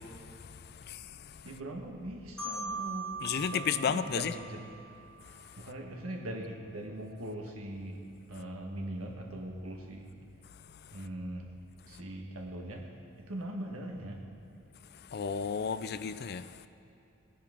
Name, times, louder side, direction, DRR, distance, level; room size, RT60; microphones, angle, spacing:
voice 1, 1.4-4.7 5.6-8.0 8.3-10.1 10.9-11.5 11.8-14.2, right 1 dB, 90° right, 1 dB, 1.5 m, -41 dB
Marimba xylophone, 2.4-5.2, right 3 dB, 5° left, 1.6 m, -40 dB
voice 2, 3.2-4.3 15.1-16.4, left 6 dB, 50° left, 13 dB, 0.4 m, -32 dB
17.5 x 10.0 x 3.7 m, 2.7 s
head